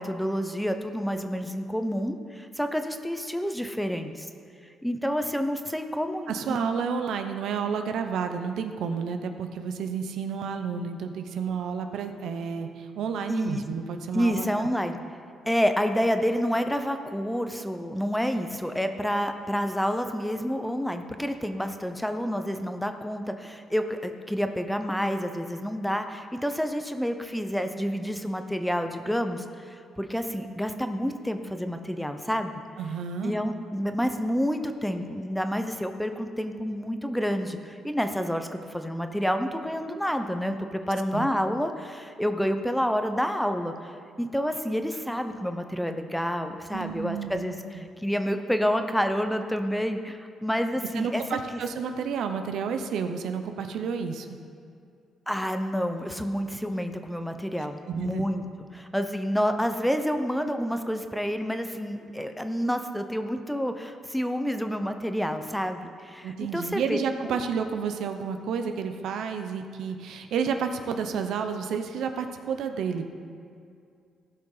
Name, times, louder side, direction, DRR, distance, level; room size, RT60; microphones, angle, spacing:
voice 1, 0.0-4.3 4.8-6.6 13.3-13.7 14.1-15.0 15.5-32.6 33.2-51.2 55.3-58.4 58.7-67.0, equal, 5° left, 7 dB, 0.8 m, -29 dB
voice 2, 6.3-14.7 32.8-33.4 41.1-41.3 46.7-47.8 50.9-54.4 57.9-58.2 66.2-73.0, right 6 dB, 75° right, 7 dB, 0.8 m, -31 dB
16.0 x 6.1 x 4.9 m, 2.4 s
cardioid pair, 90°, 0 cm